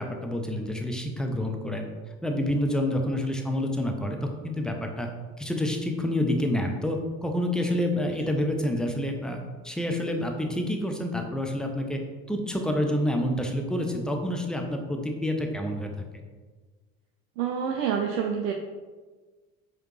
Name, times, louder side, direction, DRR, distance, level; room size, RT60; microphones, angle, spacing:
voice 1, 0.0-1.9 2.2-5.1 5.4-12.0 12.3-15.9, left 1 dB, ahead, 3 dB, 0.4 m, -28 dB
voice 2, 8.1-8.4 17.4-18.5, right 7 dB, 65° right, 3 dB, 0.5 m, -28 dB
4.8 x 2.9 x 3.1 m, 1.4 s
figure-of-eight pair, 60°, 41 cm